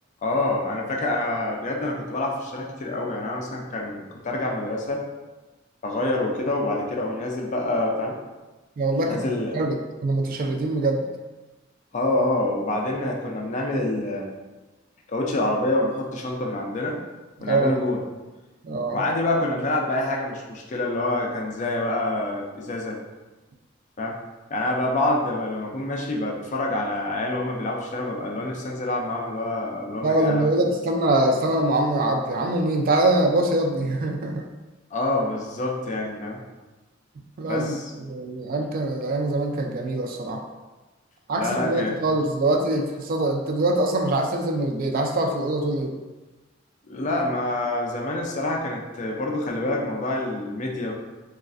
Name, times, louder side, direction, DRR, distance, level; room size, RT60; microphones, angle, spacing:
voice 1, 0.2-5.0 5.8-8.2 9.1-9.6 11.9-14.3 15.1-17.0 17.4-18.0 18.9-23.0 24.0-24.2 24.5-30.5 34.9-36.4 37.4-37.8 41.4-42.1 46.9-50.9, left 2 dB, 35° left, -1 dB, 0.4 m, -26 dB
voice 2, 8.8-9.2 9.5-9.8 10.0-11.1 17.4-17.9 18.6-19.0 30.0-34.5 37.4-40.4 41.3-46.0, right 2 dB, 45° right, 3 dB, 0.3 m, -23 dB
3.1 x 2.4 x 2.4 m, 1.2 s
head